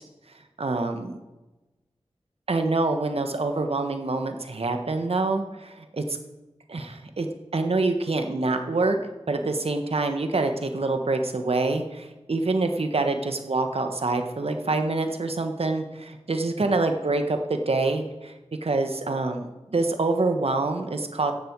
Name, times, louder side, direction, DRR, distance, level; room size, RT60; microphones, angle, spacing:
voice 1, 0.6-1.2 2.5-6.0 6.7-7.3 7.5-9.0 9.3-18.3 18.6-21.3, right 3 dB, 65° right, 6 dB, 1.5 m, -26 dB
14.5 x 10.5 x 4.8 m, 1.1 s
wide cardioid pair, 75°, 11 cm